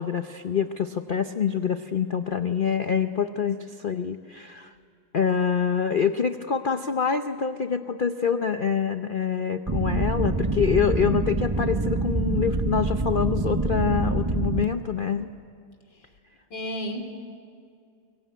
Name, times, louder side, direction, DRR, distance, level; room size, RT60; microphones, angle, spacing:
voice 1, 0.0-4.7 5.1-15.3, left 7 dB, 80° left, 8 dB, 0.4 m, -26 dB
sound 1, 9.7-14.6, right 2 dB, 35° right, 0.4 m, -26 dB
voice 2, 16.5-17.1, equal, 65° left, 5 dB, 3.8 m, -33 dB
23.5 x 23.0 x 9.3 m, 2.3 s
omnidirectional pair, 2.1 m